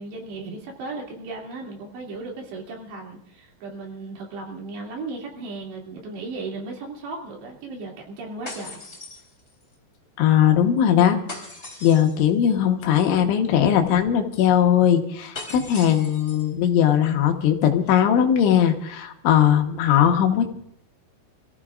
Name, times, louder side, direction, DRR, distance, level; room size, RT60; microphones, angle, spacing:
voice 1, 0.0-8.8, right 3 dB, 65° right, -1 dB, 4.8 m, -36 dB
sound 1, 8.5-9.7 11.3-12.3 15.3-16.5, left 3 dB, 15° left, 3.0 m, -39 dB
voice 2, 10.2-11.2 11.8-20.5, left 9 dB, 80° left, 4 dB, 3.6 m, -19 dB
28.0 x 15.0 x 2.5 m, 0.75 s
omnidirectional pair, 5.5 m